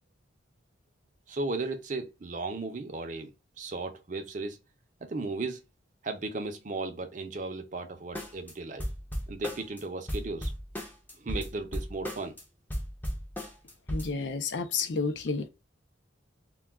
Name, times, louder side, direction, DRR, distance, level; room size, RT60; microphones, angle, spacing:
voice 1, 1.3-3.3 3.6-4.6 5.0-5.6 6.0-8.8 9.3-10.5 11.2-12.4, right 3 dB, 40° right, 0.5 m, -35 dB
sound 1, 8.2-8.5 8.8-9.8 10.1-12.4 12.7-14.1, equal, 10° left, 0.5 m, -35 dB
voice 2, 13.9-15.5, left 4 dB, 60° left, 0.5 m, -30 dB
2.2 x 2.2 x 3.4 m
head